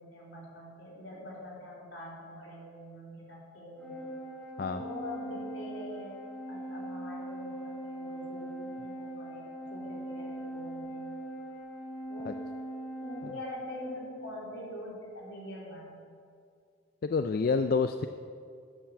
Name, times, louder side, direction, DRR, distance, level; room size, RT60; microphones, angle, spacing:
voice 1, 0.0-4.1 4.7-6.2 6.5-11.1 12.1-12.4 13.0-16.0, left 1 dB, 75° left, -5 dB, 3.7 m, -44 dB
Organ, 3.8-14.5, right 1 dB, 5° left, 1.9 m, -41 dB
voice 2, 17.0-18.1, left 4 dB, 50° left, 8 dB, 0.3 m, -28 dB
12.0 x 5.9 x 8.5 m, 2.2 s
head